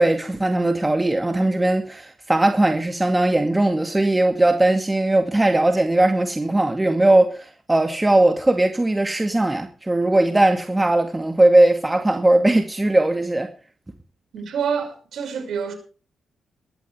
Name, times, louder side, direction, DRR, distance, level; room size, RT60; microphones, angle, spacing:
voice 1, 0.0-13.5, right 1 dB, 20° right, 2.3 m, -19 dB
voice 2, 14.3-15.7, right 6 dB, 70° right, 6.2 m, -27 dB
20.0 x 13.5 x 3.5 m
supercardioid pair, 50°, 0 cm